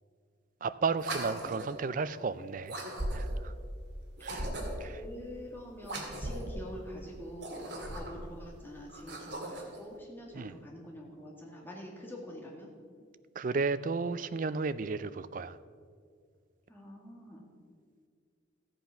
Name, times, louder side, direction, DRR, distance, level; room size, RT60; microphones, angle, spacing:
voice 1, 0.6-2.8 3.1-3.5 4.2-4.5 4.8-4.9 10.3-10.5 13.4-15.6, right 4 dB, 40° right, 15 dB, 0.4 m, -33 dB
sound 1, 1.0-1.8 2.7-3.5 4.2-4.9 5.8-6.5 7.3-8.3 8.9-9.8, right 1 dB, 60° right, 2.0 m, -37 dB
voice 2, 4.8-12.7 16.7-17.5, equal, 10° left, -2 dB, 1.9 m, -45 dB
14.0 x 8.0 x 5.7 m, 2.1 s
head